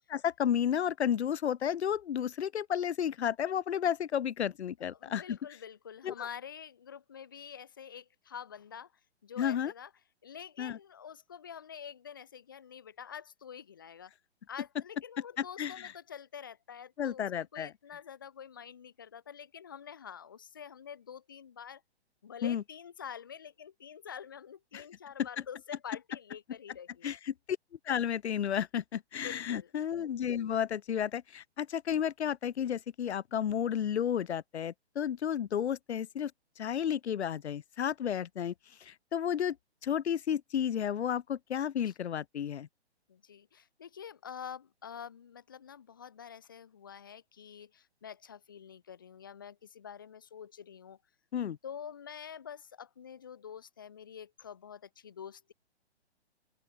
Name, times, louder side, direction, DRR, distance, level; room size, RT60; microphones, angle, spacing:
voice 1, 0.1-5.4 6.0-6.1 9.4-9.7 10.6-10.8 15.4-15.7 17.0-17.7 22.4-22.6 24.7-24.8 27.0-27.3 27.9-36.3 36.6-38.5 38.8-39.6 39.8-42.7 51.3-51.6, left 9 dB, 75° left, 0.5 m, -32 dB
voice 2, 4.9-8.9 9.2-9.9 10.2-14.1 14.5-17.3 17.5-21.8 22.2-27.2 29.1-29.7 43.1-51.0 51.6-55.5, left 8 dB, 20° left, 0.3 m, -47 dB
open air
figure-of-eight pair, 135°, 33 cm